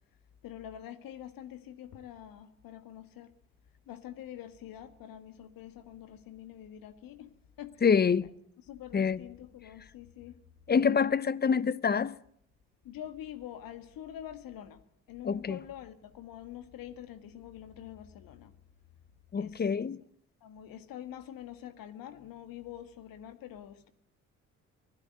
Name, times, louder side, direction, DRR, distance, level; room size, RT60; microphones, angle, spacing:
voice 1, 0.4-3.3 3.9-7.8 8.7-10.4 12.8-14.8 15.1-18.5 19.4-19.6 20.4-23.9, left 11 dB, 60° left, 1.8 m, -45 dB
voice 2, 7.8-8.3 8.9-9.2 10.7-12.2 15.2-15.6 19.3-20.0, left 6 dB, 25° left, 0.8 m, -26 dB
24.0 x 16.5 x 7.8 m
figure-of-eight pair, 50°, 40 cm